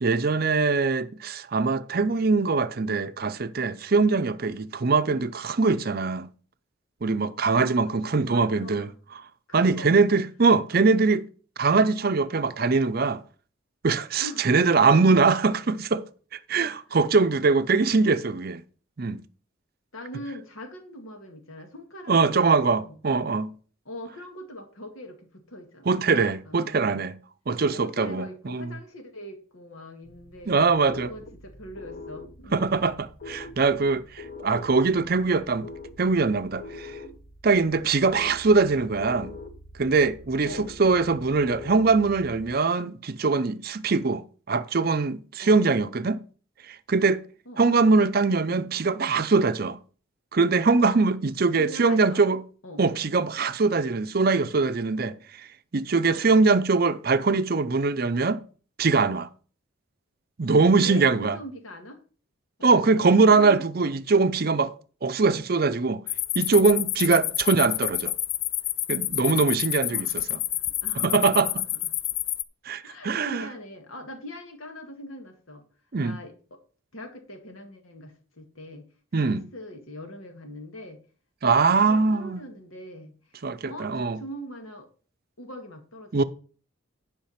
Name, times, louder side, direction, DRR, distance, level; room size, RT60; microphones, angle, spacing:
voice 1, 0.0-6.3 7.0-9.2 9.5-11.2 11.6-13.2 13.8-16.0 16.3-18.6 19.0-19.2 22.1-23.5 25.9-27.1 27.5-28.7 30.5-31.1 32.5-35.7 36.0-37.0 37.4-39.3 39.8-44.2 44.5-46.2 46.7-47.2 47.6-49.8 50.3-52.4 52.8-55.5 55.7-58.4 58.8-59.3 60.4-61.4 62.6-64.7 65.0-66.0 66.3-68.1 68.9-70.4 70.9-71.5 72.7-73.5 75.9-76.2 79.1-79.4 81.4-82.5 83.4-84.2 86.1-86.2, right 4 dB, 45° right, 0.5 m, -22 dB
voice 2, 7.5-7.9 8.2-9.0 9.5-9.9 10.8-10.9 14.2-15.3 19.9-23.0 23.9-26.2 26.4-27.0 27.6-30.5 30.8-32.7 34.5-34.6 40.4-40.7 45.4-45.6 47.5-47.6 51.6-52.2 52.6-52.8 56.1-56.3 60.8-62.0 62.6-63.7 67.1-67.3 69.9-70.2 70.5-71.8 72.8-75.7 76.0-76.6 76.9-78.9 79.2-81.0 81.6-83.1 83.7-84.9 85.4-86.1, equal, 85° left, 2.0 m, -42 dB
sound 1, 30.0-42.5, left 3 dB, 40° left, 1.2 m, -44 dB
sound 2, 66.1-72.4, left 14 dB, 70° left, 0.5 m, -29 dB
10.5 x 5.1 x 5.7 m
head